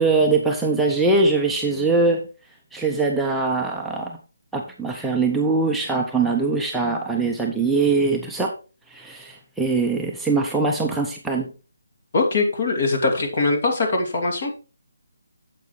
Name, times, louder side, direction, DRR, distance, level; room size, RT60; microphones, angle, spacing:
voice 1, 0.0-2.2 2.7-4.2 4.5-8.5 8.9-11.5, right 3 dB, 5° right, -1 dB, 0.6 m, -22 dB
voice 2, 12.1-14.5, left 3 dB, 45° left, 3 dB, 2.5 m, -22 dB
9.0 x 7.5 x 3.2 m, 0.33 s
hypercardioid pair, 165°, 0 cm